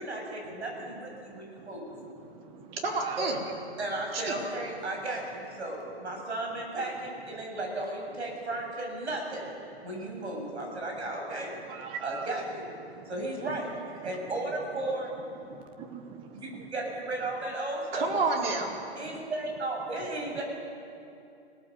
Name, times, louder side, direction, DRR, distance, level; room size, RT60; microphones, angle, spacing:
voice 1, 0.0-1.9 3.2-3.3 3.8-9.4 9.8-11.5 12.0-12.6 13.1-15.1 16.3-18.1 19.0-20.4, right 2 dB, 85° right, 1 dB, 7.6 m, -35 dB
voice 2, 1.1-1.7 2.0-3.2 11.7-12.4 12.8-13.1 13.5-13.6 15.4-16.7 19.0-19.3, right 7 dB, 15° right, 8 dB, 1.1 m, -43 dB
voice 3, 2.8-3.4 4.1-4.4 17.9-18.7, right 3 dB, 60° right, 1 dB, 4.3 m, -29 dB
25.5 x 18.0 x 8.0 m, 2.7 s
hypercardioid pair, 160°, 33 cm